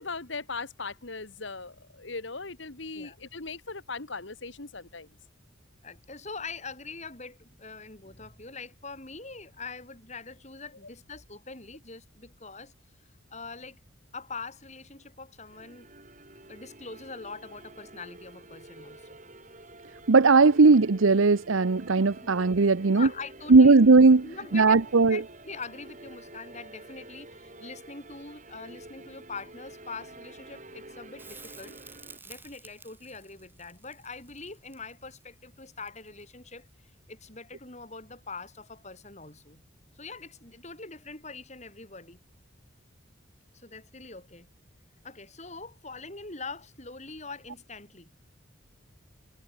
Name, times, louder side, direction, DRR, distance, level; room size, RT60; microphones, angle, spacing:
voice 1, 0.0-5.1, left 4 dB, 70° left, 2.0 m, -38 dB
voice 2, 5.8-12.7 13.0-13.8 14.1-15.9 16.5-19.2 22.2-22.3 22.8-23.7 24.2-24.8 25.1-31.7 32.2-36.7 37.1-39.6 39.9-42.2 43.5-44.5 45.0-48.1, left 4 dB, 35° left, 6.6 m, -43 dB
sound 1, 15.5-32.2, right 2 dB, 40° right, 7.7 m, -49 dB
voice 3, 20.1-23.1 23.5-24.3 24.5-25.2, right 3 dB, 85° right, 0.8 m, -18 dB
Crackle, 31.2-36.3 39.1-39.2, right 4 dB, 10° right, 5.8 m, -51 dB
head